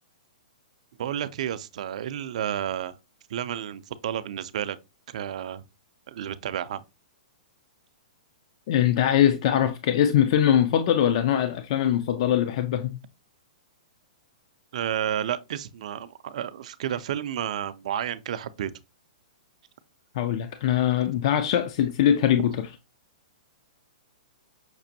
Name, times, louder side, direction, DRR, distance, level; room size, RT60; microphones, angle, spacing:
voice 1, 1.0-2.9 3.3-4.8 5.1-5.6 6.1-6.8 14.7-18.7, right 10 dB, 55° right, 0.4 m, -31 dB
voice 2, 8.7-13.0 20.1-22.7, left 10 dB, 45° left, 0.3 m, -22 dB
6.0 x 2.5 x 2.7 m
hypercardioid pair, 160°, 4 cm